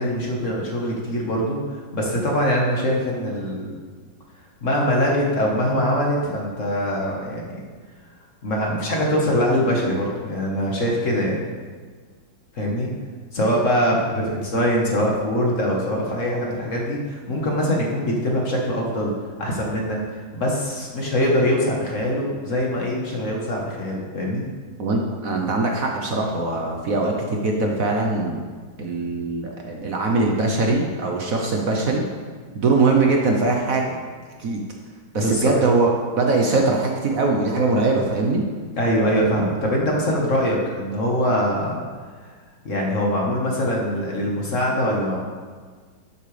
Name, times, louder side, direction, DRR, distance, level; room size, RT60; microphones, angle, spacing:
voice 1, 0.0-3.8 4.6-7.6 8.4-11.4 12.5-12.9 13.3-19.1 19.4-24.4 35.1-35.5 38.8-41.8 42.6-45.2, equal, 45° left, -2 dB, 1.7 m, -23 dB
voice 2, 24.8-28.5 28.8-32.0 32.5-34.0 34.4-34.6 35.1-38.4, right 3 dB, 55° right, 0 dB, 1.2 m, -21 dB
12.0 x 7.6 x 3.4 m, 1.5 s
omnidirectional pair, 2.0 m